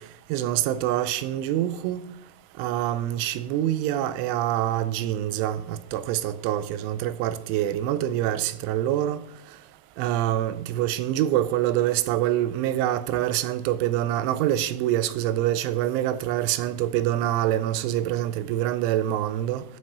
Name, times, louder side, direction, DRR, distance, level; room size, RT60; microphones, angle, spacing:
voice 1, 0.3-2.0 2.6-9.2 10.0-19.6, right 12 dB, 85° right, 3.1 m, -25 dB
10.0 x 8.1 x 6.1 m
omnidirectional pair, 5.5 m